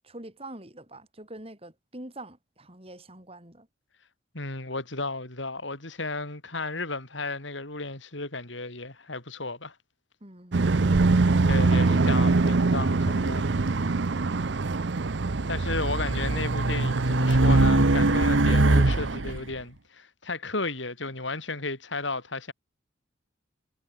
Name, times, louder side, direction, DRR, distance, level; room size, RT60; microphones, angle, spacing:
voice 1, 0.0-3.7 10.2-10.8 14.3-14.6, right 1 dB, 30° right, 7.4 m, -45 dB
voice 2, 4.3-9.8 11.5-13.6 15.5-22.5, left 3 dB, 75° left, 4.9 m, -34 dB
sound 1, 10.5-19.2, right 3 dB, 65° right, 0.7 m, -25 dB
Race car auto racing, 15.0-19.4, right 2 dB, 85° right, 1.4 m, -22 dB
head